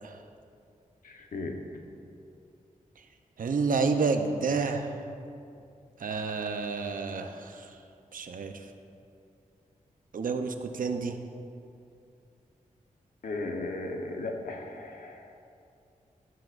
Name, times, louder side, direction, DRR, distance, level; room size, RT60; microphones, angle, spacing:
voice 1, 1.0-1.5 13.2-15.2, left 2 dB, 75° left, 2 dB, 1.2 m, -36 dB
voice 2, 3.4-4.9 6.0-7.7 8.1-8.5 10.1-11.2, right 4 dB, 75° right, 6 dB, 0.8 m, -29 dB
13.0 x 11.5 x 2.6 m, 2.5 s
cardioid pair, 55°, 14 cm